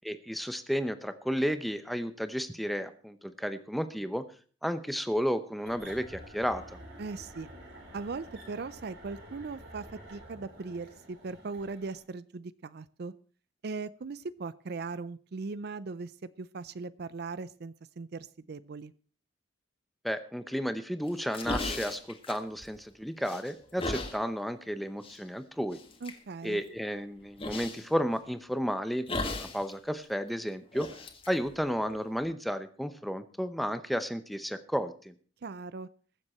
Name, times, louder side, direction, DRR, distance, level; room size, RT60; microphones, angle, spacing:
voice 1, 0.0-4.2 4.6-6.8 20.0-25.8 26.4-30.9 31.3-35.1, equal, ahead, 10 dB, 0.8 m, -32 dB
sound 1, 5.6-12.0, right 1 dB, 90° right, 5.7 m, -49 dB
voice 2, 7.0-7.5 7.9-13.1 13.6-18.9 26.0-26.6 35.4-35.9, right 4 dB, 55° right, 17 dB, 0.5 m, -39 dB
sound 2, 21.1-22.9 23.2-24.2 25.0-25.2 25.7-26.2 27.4-27.8 29.1-29.7 30.0-30.1 30.7-32.2, left 2 dB, 30° left, 1.7 m, -36 dB
21.0 x 7.4 x 4.3 m, 0.41 s
head